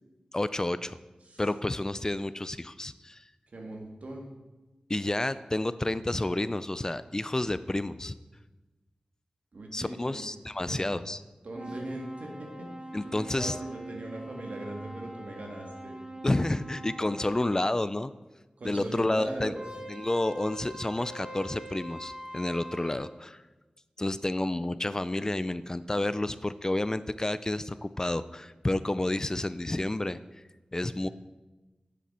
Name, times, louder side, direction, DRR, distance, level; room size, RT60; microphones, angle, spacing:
voice 1, 0.3-1.0 1.4-3.2 4.9-8.1 9.7-11.2 12.9-13.5 16.2-18.1 18.6-19.5 19.9-23.4 24.0-30.2 30.7-31.1, left 1 dB, 25° left, 14 dB, 0.3 m, -30 dB
voice 2, 3.5-4.3 9.5-10.3 10.7-11.0 11.4-12.7 13.0-16.0 18.6-19.6, right 1 dB, 70° right, 1 dB, 1.8 m, -39 dB
sound 1, 11.6-17.6 19.6-23.0, right 1 dB, 40° right, 1.5 m, -43 dB
10.0 x 7.5 x 4.3 m, 1.1 s
wide cardioid pair, 65°, 2 cm